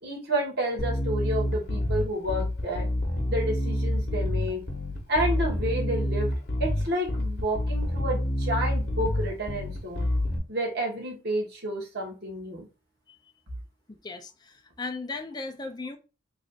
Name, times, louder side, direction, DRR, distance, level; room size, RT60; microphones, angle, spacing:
voice 1, 0.0-2.9 3.3-4.7 5.1-6.3 6.6-10.1 10.5-12.7, right 1 dB, 55° right, 1.4 m, -30 dB
Bass guitar, 0.8-10.4, left 1 dB, 55° left, 0.9 m, -28 dB
voice 2, 13.9-16.0, left 3 dB, 20° left, 0.4 m, -37 dB
3.2 x 2.5 x 3.9 m
head